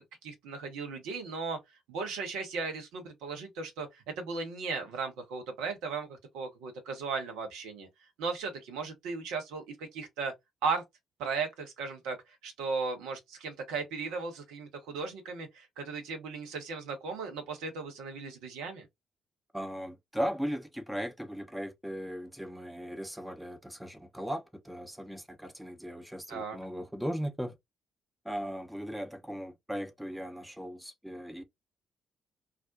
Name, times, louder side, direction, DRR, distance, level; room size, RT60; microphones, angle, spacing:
voice 1, 0.0-1.6 1.9-7.9 8.2-10.3 10.6-10.8 11.2-18.9 26.3-26.6, right 4 dB, 65° right, 0.7 m, -36 dB
voice 2, 19.5-27.6 28.2-31.4, equal, 5° right, 0.7 m, -37 dB
2.4 x 2.1 x 2.5 m
figure-of-eight pair, 40°, 0 cm